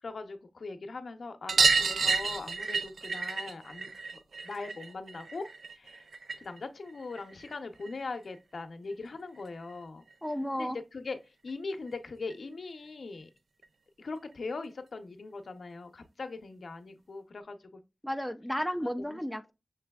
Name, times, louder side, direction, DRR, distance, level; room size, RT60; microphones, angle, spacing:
voice 1, 0.0-6.1 6.4-10.0 10.5-13.3 14.0-17.8 18.8-19.2, left 3 dB, 70° left, 0.7 m, -41 dB
sound 1, 1.5-6.6 6.9-8.0 9.4-9.5 9.7-9.8 10.1-10.2 11.5-11.6 11.9-12.0 12.3-12.4 13.6-13.7 14.5-14.6, right 4 dB, 80° right, 0.4 m, -30 dB
voice 2, 10.2-10.8 18.0-19.5, equal, ahead, 0.4 m, -33 dB
6.0 x 3.2 x 2.2 m
wide cardioid pair, 105°, 0 cm